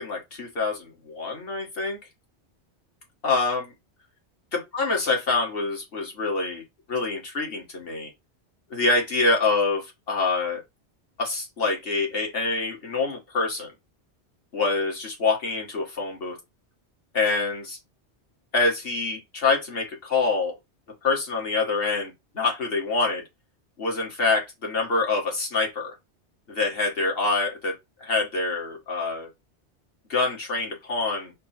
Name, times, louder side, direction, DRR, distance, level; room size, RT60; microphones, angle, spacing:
voice 1, 0.0-2.0 3.2-3.7 4.5-6.6 6.9-8.1 8.7-10.6 11.2-13.7 14.5-16.4 17.1-17.8 18.5-20.5 21.0-23.2 23.8-25.9 26.5-27.7 28.0-29.3 30.1-31.3, left 3 dB, 55° left, 1.7 m, -26 dB
4.3 x 2.1 x 4.2 m
omnidirectional pair, 1.2 m